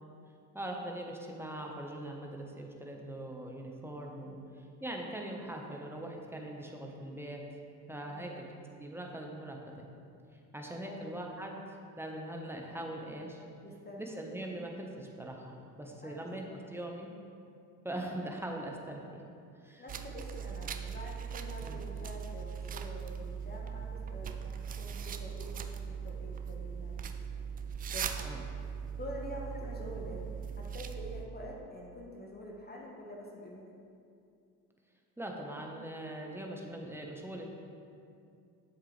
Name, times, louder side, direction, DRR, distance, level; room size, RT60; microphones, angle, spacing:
voice 1, 0.5-7.5 7.9-8.5 8.8-9.9 10.5-13.4 14.0-17.1 17.8-19.2 19.6-19.8 21.6-21.8 28.2-28.4 35.2-37.5, right 1 dB, 5° right, 0 dB, 1.2 m, -41 dB
voice 2, 8.1-8.5 10.8-11.1 13.6-14.0 16.0-16.3 19.8-27.1 27.9-28.2 29.0-30.2 30.6-33.7, left 1 dB, 20° left, -2 dB, 1.5 m, -46 dB
sound 1, 19.9-31.3, right 7 dB, 20° right, 0.3 m, -40 dB
9.9 x 7.5 x 3.3 m, 2.5 s
hypercardioid pair, 70°, 50 cm